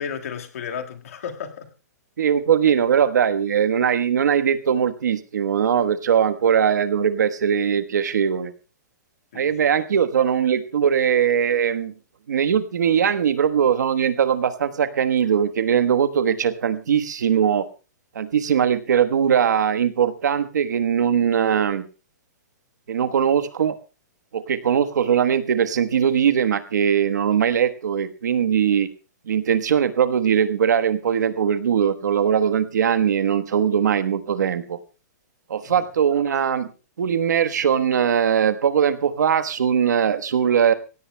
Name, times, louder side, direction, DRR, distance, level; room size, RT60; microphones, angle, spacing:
voice 1, 0.0-1.7 9.3-9.5 35.6-35.9, left 7 dB, 55° left, 1.7 m, -33 dB
voice 2, 2.2-8.5 9.3-11.9 12.3-17.7 18.1-21.8 22.9-23.7 24.3-28.9 29.3-34.8 35.5-36.7 37.0-40.7, right 8 dB, 80° right, 1.2 m, -20 dB
26.5 x 16.5 x 2.2 m
hypercardioid pair, 175°, 9 cm